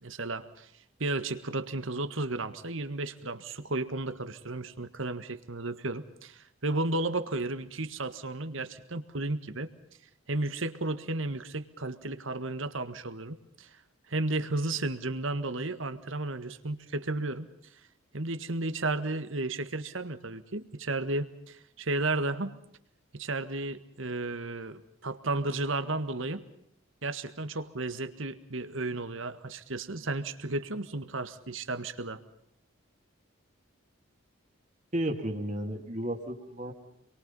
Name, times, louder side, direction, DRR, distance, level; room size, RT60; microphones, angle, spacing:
voice 1, 0.0-0.7 1.0-9.7 10.3-13.7 14.1-17.5 18.1-22.5 23.1-26.4 27.0-32.2, right 2 dB, 70° right, 10 dB, 1.7 m, -33 dB
voice 2, 34.9-36.7, right 1 dB, 35° right, 3 dB, 2.6 m, -33 dB
28.0 x 23.0 x 5.5 m, 0.73 s
head